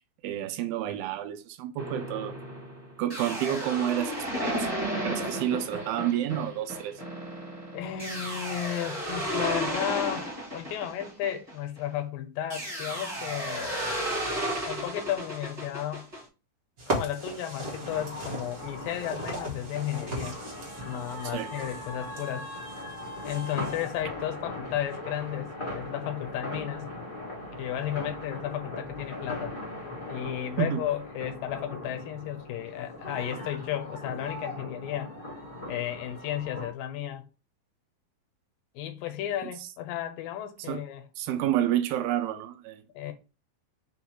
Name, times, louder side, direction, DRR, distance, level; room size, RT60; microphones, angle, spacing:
voice 1, 0.2-2.4 3.0-4.7 5.0-7.0 21.3-21.5 30.6-30.8 40.7-40.8 41.2-42.8, right 11 dB, 85° right, 2.4 m, -29 dB
sound 1, 1.8-11.9 12.5-16.2, equal, 25° right, 0.8 m, -33 dB
voice 2, 7.7-13.7 14.7-16.1 16.9-20.4 20.8-22.5 23.2-27.0 27.6-29.6 30.1-35.1 35.7-37.3 38.7-41.0 42.9-43.1, left 11 dB, 85° left, 2.3 m, -33 dB
sound 2, 16.8-23.9, right 1 dB, 60° right, 0.9 m, -38 dB
sound 3, 17.6-36.7, left 1 dB, 35° left, 0.8 m, -39 dB
5.6 x 2.1 x 4.4 m
omnidirectional pair, 4.1 m